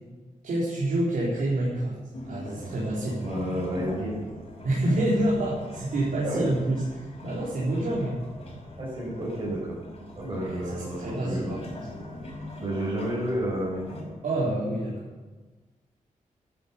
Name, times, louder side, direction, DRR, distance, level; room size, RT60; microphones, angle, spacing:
voice 1, 0.4-1.9 2.3-3.2 4.6-8.2 10.4-11.7 14.2-15.1, right 1 dB, 85° right, -6 dB, 4.1 m, -27 dB
sound 1, 2.1-14.0, left 1 dB, 50° left, 5.6 m, -42 dB
voice 2, 3.2-4.3 6.2-6.5 7.8-7.9 8.8-9.8 10.2-11.5 12.6-13.9, right 1 dB, 40° right, -5 dB, 5.2 m, -31 dB
12.5 x 12.0 x 7.1 m, 1.3 s
wide cardioid pair, 125°, 14 cm